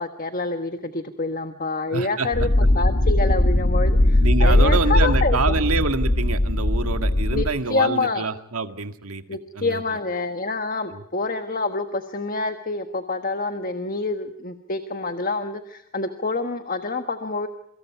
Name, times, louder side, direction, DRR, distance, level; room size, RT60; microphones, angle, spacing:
voice 1, 0.0-5.4 7.3-8.3 9.3-17.5, left 3 dB, 40° left, 7 dB, 1.4 m, -27 dB
voice 2, 1.9-2.7 4.2-9.2 9.5-10.0 10.9-11.0, right 3 dB, 80° right, 8 dB, 1.9 m, -26 dB
sound 1, 2.3-7.5, left 1 dB, 65° left, 1.8 m, -19 dB
27.5 x 25.0 x 4.7 m, 0.79 s
head